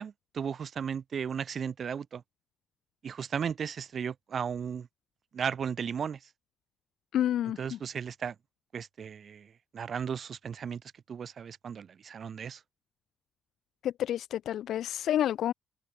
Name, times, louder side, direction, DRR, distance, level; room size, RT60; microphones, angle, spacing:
voice 1, 0.0-2.2 3.0-4.9 5.3-6.3 7.6-8.3 8.7-10.8 11.1-12.6, right 7 dB, 50° right, 1.5 m, -35 dB
voice 2, 7.1-7.8 13.8-15.5, left 11 dB, 75° left, 0.4 m, -29 dB
open air
cardioid pair, 90°, 0 cm